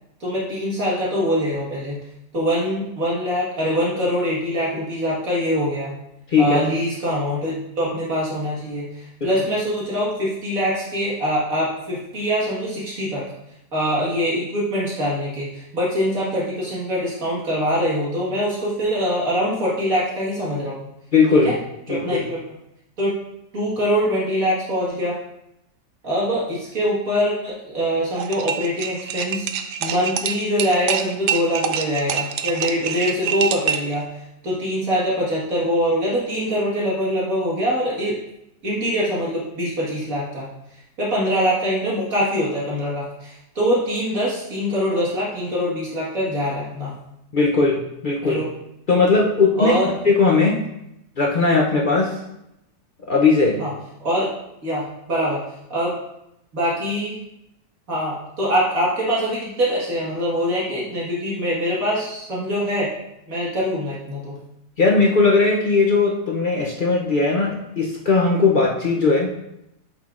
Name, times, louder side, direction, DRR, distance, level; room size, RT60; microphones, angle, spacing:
voice 1, 0.2-2.0 2.3-5.9 6.4-13.2 13.7-20.8 21.3-21.5 21.9-22.4 23.0-23.1 23.5-25.2 26.0-29.5 29.8-34.1 34.4-38.2 38.6-40.5 41.0-46.9 48.2-48.5 49.6-49.9 53.6-53.7 54.0-54.3 54.6-55.4 55.7-56.0 56.5-57.2 57.9-62.9 63.3-64.3, equal, 60° right, -6 dB, 2.1 m, -23 dB
voice 2, 6.3-6.6 9.2-9.3 21.1-21.5 21.9-22.2 47.3-48.4 48.9-49.8 50.0-50.6 51.2-52.1 53.1-53.6 64.8-69.3, left 4 dB, 55° left, -2 dB, 0.5 m, -18 dB
sound 1, 28.1-33.9, right 9 dB, 90° right, 1.2 m, -26 dB
7.7 x 6.0 x 2.5 m, 0.83 s
omnidirectional pair, 1.7 m